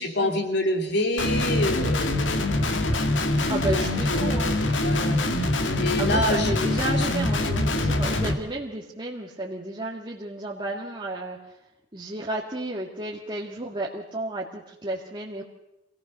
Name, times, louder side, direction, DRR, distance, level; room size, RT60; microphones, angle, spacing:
voice 1, 0.0-2.6 3.7-5.2 5.7-6.7, left 1 dB, 60° left, 4 dB, 3.3 m, -27 dB
Guitar, 1.2-8.3, left 1 dB, 85° left, 2.1 m, -24 dB
voice 2, 3.5-4.5 6.0-11.6 11.9-15.4, right 2 dB, 25° right, -2 dB, 2.0 m, -32 dB
26.5 x 17.0 x 6.7 m, 0.93 s
head